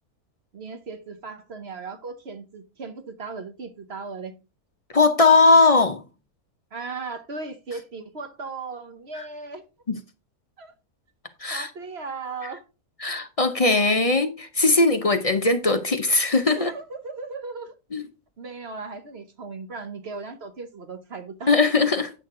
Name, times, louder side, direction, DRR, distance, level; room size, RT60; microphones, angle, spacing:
voice 1, 0.5-4.4 6.7-9.6 10.6-10.7 11.5-12.6 16.5-17.7 18.4-21.5, right 4 dB, 50° right, 1.1 m, -37 dB
voice 2, 4.9-6.0 9.2-9.3 9.9-10.0 11.4-11.7 13.0-16.7 17.9-18.0 21.5-22.1, left 3 dB, 35° left, 0.5 m, -19 dB
9.8 x 6.4 x 3.7 m
omnidirectional pair, 1.6 m